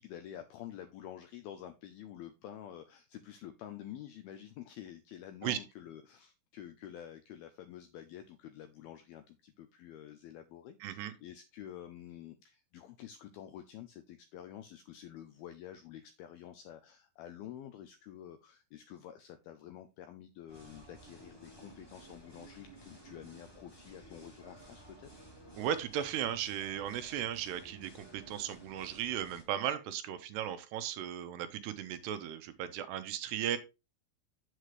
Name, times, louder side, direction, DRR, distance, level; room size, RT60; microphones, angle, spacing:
voice 1, 0.0-25.1, left 11 dB, 85° left, 8 dB, 2.2 m, -49 dB
voice 2, 10.8-11.1 25.6-33.6, right 10 dB, 80° right, 10 dB, 2.7 m, -36 dB
sound 1, 20.5-29.4, right 1 dB, 10° left, 1.3 m, -55 dB
8.0 x 7.5 x 3.1 m, 0.26 s
omnidirectional pair, 5.1 m